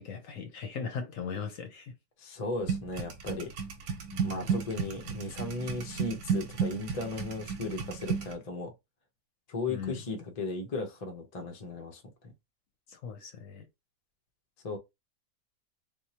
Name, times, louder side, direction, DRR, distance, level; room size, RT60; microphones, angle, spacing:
voice 1, 0.0-1.9 4.1-4.5 9.7-10.0 12.9-13.6, left 6 dB, 60° left, 1.0 m, -38 dB
voice 2, 2.2-3.5 4.2-8.7 9.5-12.3 14.6-14.8, left 2 dB, 40° left, 0.5 m, -36 dB
sound 1, 2.7-8.3, right 6 dB, 90° right, 1.5 m, -33 dB
3.7 x 2.7 x 2.8 m
omnidirectional pair, 1.8 m